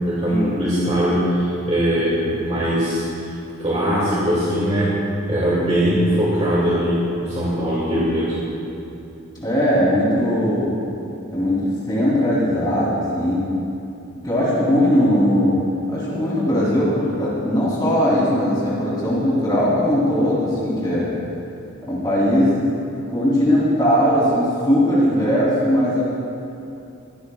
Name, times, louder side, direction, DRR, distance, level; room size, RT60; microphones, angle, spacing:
voice 1, 0.0-3.3 3.6-4.9 5.3-8.4, equal, 30° right, -8 dB, 2.5 m, -21 dB
voice 2, 9.3-10.7 11.3-13.5 14.2-15.6 15.9-21.1 21.9-22.5 23.1-26.0, equal, 20° left, -7 dB, 3.3 m, -19 dB
21.5 x 15.5 x 2.4 m, 2.8 s
head